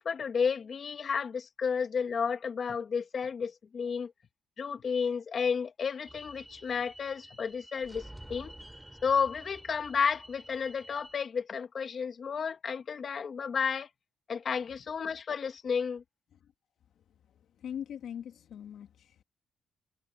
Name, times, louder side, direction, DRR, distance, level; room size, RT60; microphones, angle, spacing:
voice 1, 0.0-4.1 4.6-8.5 9.0-13.9 14.3-16.0, left 6 dB, 45° left, 2.5 m, -32 dB
sound 1, 6.1-11.2, right 1 dB, 5° right, 3.3 m, -50 dB
voice 2, 17.6-19.2, left 9 dB, 70° left, 2.1 m, -41 dB
cardioid pair, 90°, 0 cm